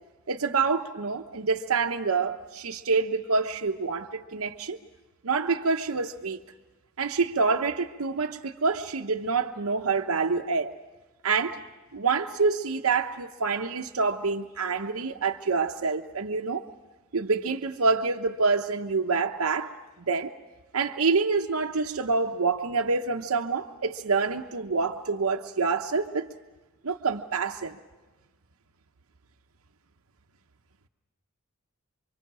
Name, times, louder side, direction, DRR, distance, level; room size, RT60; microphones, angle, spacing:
voice 1, 0.3-4.8 5.2-6.4 7.0-10.7 11.2-11.6 11.9-16.6 17.1-20.3 20.7-26.3 26.8-27.8, right 4 dB, 80° right, 0.9 m, -27 dB
28.5 x 24.5 x 6.2 m
head